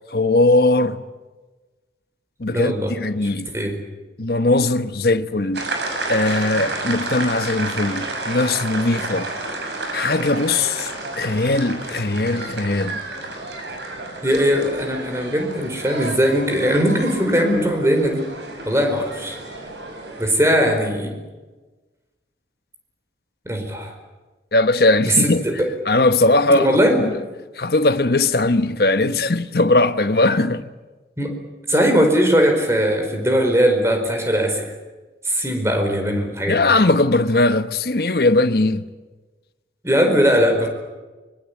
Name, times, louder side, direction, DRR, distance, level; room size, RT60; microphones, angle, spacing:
voice 1, 0.1-1.0 2.4-3.5 4.2-5.7 6.1-9.3 9.9-10.9 11.2-13.0 24.5-25.4 25.9-26.7 27.6-30.6 36.5-38.8, left 2 dB, 60° left, 1.2 m, -19 dB
voice 2, 2.5-2.9 3.2-3.7 14.2-18.2 18.6-19.4 20.2-21.2 23.4-23.9 25.0-25.7 26.5-27.1 31.2-31.3 31.7-34.6 35.2-36.6 39.8-40.7, equal, 15° right, 4.8 m, -19 dB
sound 1, 5.5-20.2, right 2 dB, 75° right, 6.4 m, -31 dB
24.5 x 23.0 x 8.5 m
head